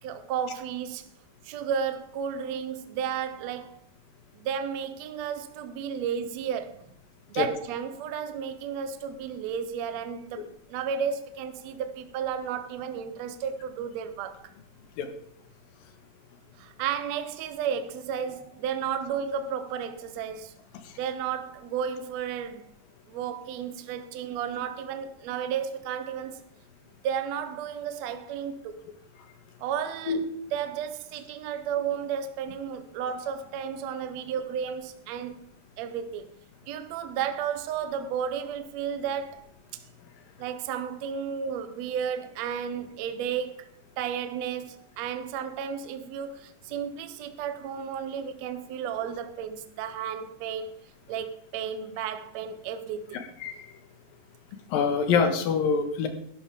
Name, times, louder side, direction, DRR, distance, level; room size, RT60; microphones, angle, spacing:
voice 1, 0.0-1.1 1.4-3.8 4.3-6.9 7.3-14.5 16.6-20.5 21.0-22.7 23.1-26.4 27.0-28.7 29.6-30.2 30.5-35.4 35.8-36.3 36.7-39.5 39.7-39.8 40.4-43.7 44.0-50.8 51.1-53.2, right 8 dB, 70° right, 1.7 m, -33 dB
voice 2, 53.1-53.7 54.7-56.1, left 6 dB, 70° left, 3.1 m, -26 dB
12.5 x 12.0 x 3.7 m
omnidirectional pair, 4.3 m